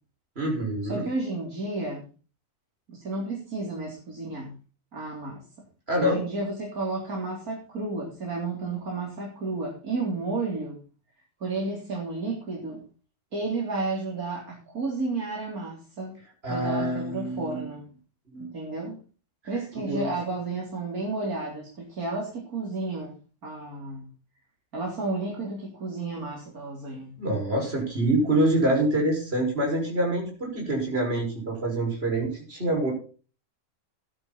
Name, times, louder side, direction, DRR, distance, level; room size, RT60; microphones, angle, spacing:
voice 1, 0.4-1.0 5.9-6.2 16.4-17.7 18.3-18.5 19.9-20.1 27.2-32.9, right 1 dB, 40° right, -1 dB, 6.2 m, -26 dB
voice 2, 0.9-2.0 2.9-4.5 4.9-5.4 6.0-10.8 11.4-12.8 13.3-16.2 16.5-17.8 18.4-19.0 19.4-23.1 23.4-24.0 24.7-27.1, right 3 dB, 75° right, -2 dB, 4.2 m, -32 dB
15.0 x 11.5 x 4.2 m, 0.36 s
omnidirectional pair, 1.6 m